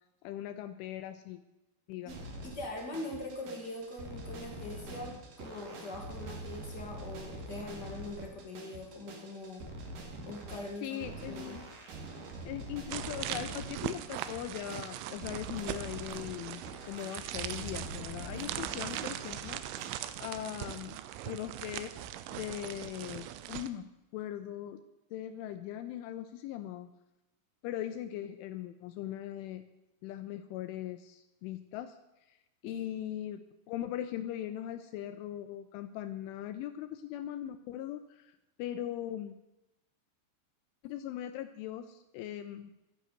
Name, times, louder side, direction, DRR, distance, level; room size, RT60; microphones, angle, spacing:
voice 1, 0.2-1.4 1.9-2.1 10.8-11.6 12.4-19.9 20.2-21.0 21.2-21.9 22.3-23.9 24.1-24.8 25.1-26.9 27.6-29.6 30.0-32.0 32.6-33.4 33.7-38.3 38.6-39.3 40.8-42.7, left 12 dB, 80° left, 10 dB, 2.9 m, -40 dB
sound 1, 2.1-19.9, right 1 dB, 55° right, 2.8 m, -45 dB
voice 2, 2.4-9.6 10.2-11.6 32.6-33.0, left 2 dB, 45° left, 0 dB, 1.3 m, -42 dB
sound 2, 12.9-23.7, right 12 dB, 80° right, 3.1 m, -40 dB
12.5 x 9.4 x 9.2 m, 0.95 s
omnidirectional pair, 5.9 m